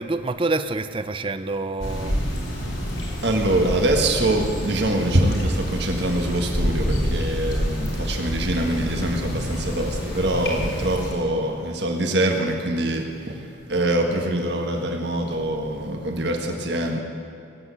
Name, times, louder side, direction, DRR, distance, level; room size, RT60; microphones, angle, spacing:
voice 1, 0.0-2.2, right 3 dB, 25° right, 11 dB, 0.5 m, -27 dB
sound 1, 1.8-11.1, equal, 85° left, 3.9 m, -27 dB
voice 2, 3.2-13.0 13.7-17.0, right 1 dB, 65° right, 3 dB, 1.7 m, -24 dB
18.5 x 8.4 x 8.3 m, 2.7 s
head